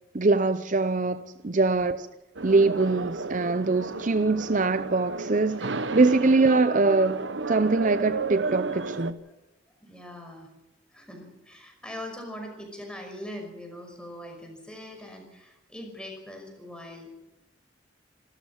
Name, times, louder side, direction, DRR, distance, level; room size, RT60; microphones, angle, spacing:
voice 1, 0.1-2.1 2.4-9.2, right 3 dB, 40° right, 0.6 m, -23 dB
voice 2, 1.6-2.0 2.7-2.9 6.2-6.4 9.8-10.5 10.9-17.2, left 1 dB, 5° left, 5.4 m, -42 dB
sound 1, 2.4-9.1, right 3 dB, 70° right, 1.0 m, -33 dB
25.5 x 14.0 x 7.3 m
head